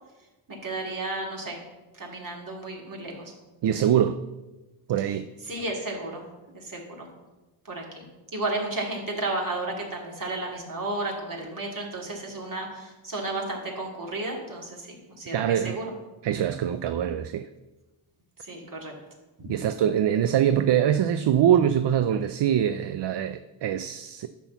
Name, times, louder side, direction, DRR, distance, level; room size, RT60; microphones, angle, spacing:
voice 1, 0.5-1.6 1.9-3.3 5.0-5.1 5.4-6.2 6.5-7.1 7.7-15.9 18.4-18.9 19.4-19.5, right 2 dB, 40° right, -1 dB, 2.5 m, -33 dB
voice 2, 3.6-4.2 4.9-5.3 15.3-15.8 16.2-17.5 19.5-24.3, right 10 dB, 60° right, 11 dB, 0.5 m, -23 dB
12.0 x 4.3 x 7.0 m, 1.1 s
wide cardioid pair, 105°, 49 cm